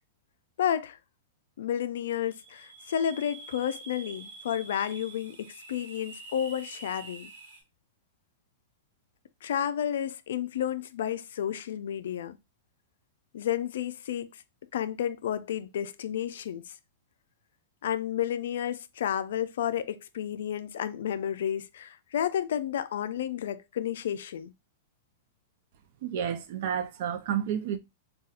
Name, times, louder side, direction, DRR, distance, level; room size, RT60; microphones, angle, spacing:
voice 1, 0.6-1.0 1.6-7.3 9.4-12.4 13.3-14.3 14.7-16.7 17.8-24.5, left 10 dB, 75° left, 0.3 m, -31 dB
sound 1, 2.2-7.6, right 4 dB, 80° right, 1.2 m, -47 dB
voice 2, 26.0-27.8, right 9 dB, 55° right, 0.5 m, -30 dB
4.1 x 2.3 x 2.4 m
supercardioid pair, 150°, 0 cm